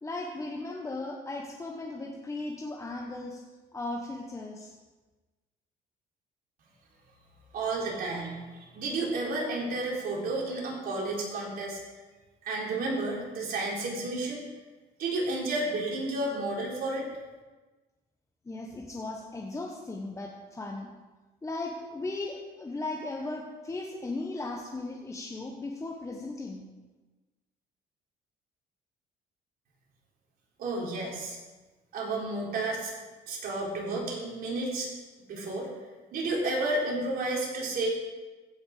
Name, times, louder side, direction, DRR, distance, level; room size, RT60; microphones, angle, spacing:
voice 1, 0.0-3.4 3.7-4.7 18.5-20.9 21.4-26.7, left 2 dB, 15° left, 0 dB, 1.1 m, -37 dB
voice 2, 7.5-11.8 12.4-14.4 15.0-17.1 30.6-31.4 31.9-32.9 33.3-34.9 35.3-35.7 36.1-37.9, right 2 dB, 60° right, -3 dB, 4.0 m, -31 dB
15.5 x 6.4 x 4.9 m, 1.2 s
cardioid pair, 110°, 17 cm